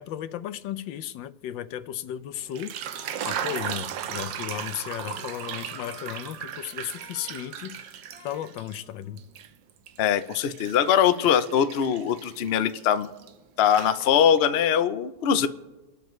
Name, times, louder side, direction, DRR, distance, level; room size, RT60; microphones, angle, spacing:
voice 1, 0.0-2.7 3.2-9.2, left 11 dB, 90° left, 1.4 m, -35 dB
sound 1, 2.4-8.8 9.2-13.3 13.6-14.4, right 9 dB, 80° right, 1.5 m, -37 dB
Trumpet, 2.9-9.1, equal, 35° right, 4.0 m, -51 dB
voice 2, 10.0-13.1 13.6-15.5, left 8 dB, 75° left, 0.5 m, -22 dB
29.5 x 12.0 x 3.1 m
omnidirectional pair, 2.0 m